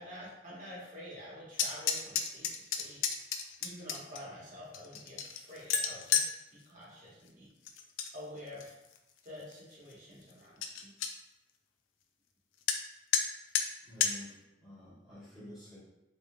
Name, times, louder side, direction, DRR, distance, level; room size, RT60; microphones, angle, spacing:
voice 1, 0.0-3.0 3.6-7.5 8.1-8.7 9.2-10.9, left 1 dB, 45° right, -6 dB, 1.2 m, -48 dB
sound 1, 1.5-4.2 4.7-6.3 7.7-8.1 8.5-9.0 9.5-9.6 9.9-10.0 10.3-10.4 10.6-11.1 12.7-12.8 13.1-13.2 13.6-13.7 14.0-14.1, left 7 dB, 85° left, 0.3 m, -31 dB
voice 2, 13.8-15.8, left 1 dB, ahead, -13 dB, 1.3 m, -50 dB
3.4 x 3.0 x 2.3 m, 0.93 s
head